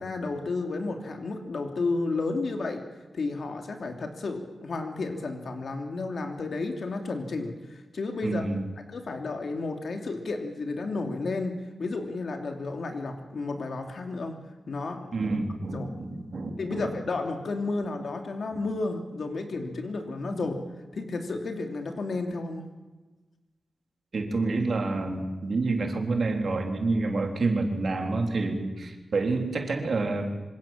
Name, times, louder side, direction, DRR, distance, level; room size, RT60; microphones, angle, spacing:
voice 1, 0.0-2.8 3.1-8.5 8.9-14.4 14.7-15.2 15.7-15.9 16.6-20.6 20.9-22.6, left 3 dB, 60° left, 4 dB, 2.9 m, -32 dB
voice 2, 8.2-8.6 15.1-16.9 24.1-30.3, right 3 dB, 55° right, 3 dB, 3.7 m, -28 dB
26.5 x 25.5 x 7.5 m, 1.2 s
wide cardioid pair, 165°, 0 cm